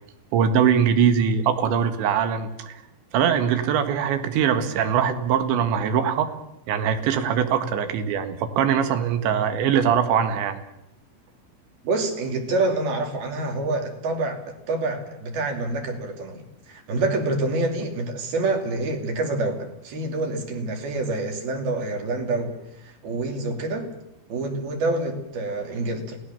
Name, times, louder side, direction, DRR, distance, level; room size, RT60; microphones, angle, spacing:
voice 1, 0.3-2.8 3.1-6.3 6.7-10.6, right 8 dB, 80° right, 9 dB, 4.0 m, -22 dB
voice 2, 11.8-22.5 22.8-23.9 24.3-26.2, right 2 dB, 60° right, 3 dB, 4.5 m, -27 dB
28.5 x 18.0 x 7.0 m, 0.84 s
omnidirectional pair, 5.1 m